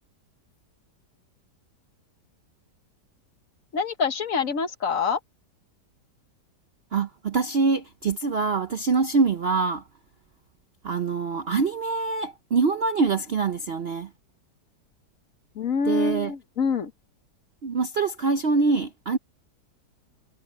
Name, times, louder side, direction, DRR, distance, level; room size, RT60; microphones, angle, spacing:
voice 1, 3.7-5.2 15.5-16.9, left 5 dB, 55° left, 1.4 m, -25 dB
voice 2, 6.9-9.8 10.8-14.1 15.9-16.3 17.6-19.2, right 4 dB, 55° right, 0.7 m, -24 dB
omnidirectional pair, 1.9 m